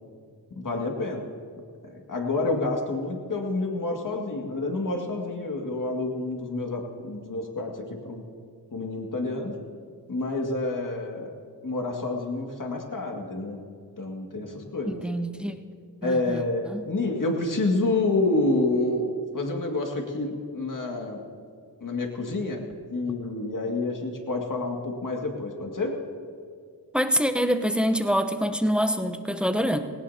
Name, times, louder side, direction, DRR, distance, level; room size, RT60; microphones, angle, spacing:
voice 1, 0.5-1.3 1.8-8.2 8.7-9.5 10.1-11.3 11.6-13.6 14.0-15.0 16.0-21.2 21.8-22.6 22.9-26.0, left 2 dB, 50° left, 1 dB, 2.2 m, -28 dB
voice 2, 14.9-15.6 16.0-16.8 26.9-29.8, equal, ahead, 7 dB, 0.9 m, -25 dB
18.0 x 18.0 x 2.9 m, 2.1 s
cardioid pair, 60°, 41 cm